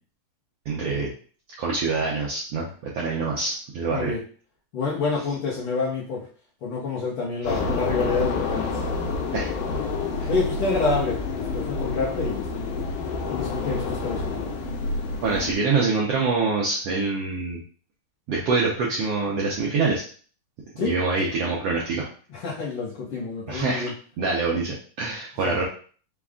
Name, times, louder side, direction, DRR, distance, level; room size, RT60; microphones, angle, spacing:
voice 1, 0.7-1.1 1.6-2.7 2.9-4.1 7.5-7.6 9.3-9.5 15.2-17.6 18.3-20.0 20.8-22.1 23.5-23.8 24.2-25.6, right 4 dB, 90° right, -3 dB, 1.4 m, -25 dB
voice 2, 4.7-6.2 6.6-8.7 10.3-12.7 13.3-14.5 20.8-20.9 22.3-23.9 25.4-25.6, left 4 dB, 60° left, -6 dB, 1.5 m, -28 dB
sound 1, 7.4-15.5, left 3 dB, 90° left, 2.3 m, -28 dB
5.1 x 2.4 x 3.5 m, 0.42 s
omnidirectional pair, 3.6 m